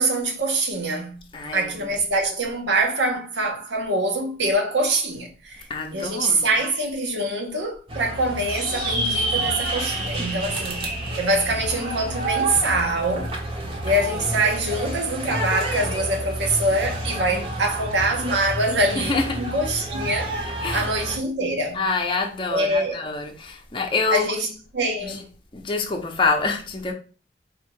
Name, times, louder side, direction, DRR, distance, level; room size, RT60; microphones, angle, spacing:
voice 1, 0.0-1.2 1.5-13.3 13.8-20.5 20.7-21.8 22.5-23.0 24.1-25.3, right 2 dB, 85° right, 0.9 m, -24 dB
voice 2, 1.3-1.7 5.7-6.5 10.2-10.3 13.9-14.2 17.3-17.4 19.0-19.3 20.6-20.9 21.7-24.3 25.0-25.2 25.5-26.9, left 4 dB, 30° left, 0.6 m, -26 dB
sound 1, 7.9-21.2, right 2 dB, 30° right, 0.7 m, -30 dB
sound 2, 8.5-13.2, right 2 dB, 55° right, 1.0 m, -30 dB
3.5 x 2.3 x 4.4 m
head